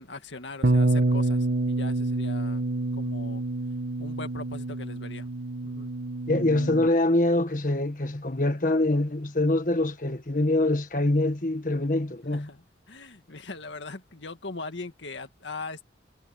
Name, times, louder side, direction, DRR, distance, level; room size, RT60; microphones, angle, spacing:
voice 1, 0.0-2.6 2.9-3.4 4.0-5.3 5.6-5.9 12.3-15.9, left 3 dB, 80° left, 1.9 m, -40 dB
Bass guitar, 0.6-6.9, right 2 dB, 65° right, 1.4 m, -27 dB
voice 2, 6.3-12.5, left 1 dB, 45° left, 1.6 m, -24 dB
head